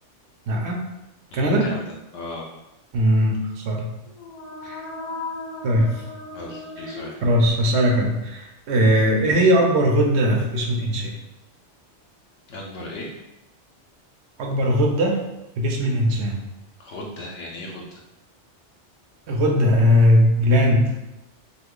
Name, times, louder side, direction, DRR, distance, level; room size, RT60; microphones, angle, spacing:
voice 1, 0.5-0.8 1.3-1.7 2.9-3.9 4.6-4.8 5.6-5.9 6.8-11.1 14.4-15.2 15.6-16.4 19.3-20.8, equal, 70° right, 1 dB, 0.8 m, -19 dB
voice 2, 1.3-1.8 2.1-2.5 6.3-7.1 12.5-13.1 16.8-18.0, left 1 dB, 75° left, -2 dB, 0.9 m, -36 dB
sound 1, 4.0-7.9, left 3 dB, 35° left, 0.5 m, -37 dB
2.8 x 2.4 x 3.6 m, 0.94 s
omnidirectional pair, 1.2 m